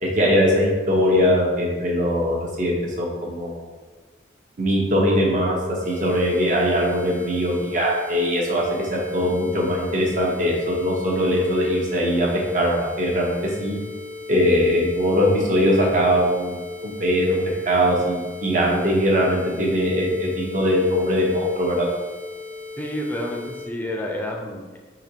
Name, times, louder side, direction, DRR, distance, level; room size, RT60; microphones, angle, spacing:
voice 1, 0.0-3.6 4.6-5.6 5.8-12.3 12.5-13.7 14.3-17.4 17.6-21.9, equal, 40° right, -2 dB, 0.9 m, -21 dB
sound 1, 5.8-23.7, left 3 dB, 90° right, 1.3 m, -37 dB
voice 2, 22.8-24.8, left 1 dB, 10° left, 0 dB, 0.4 m, -29 dB
5.0 x 2.9 x 2.8 m, 1.3 s
head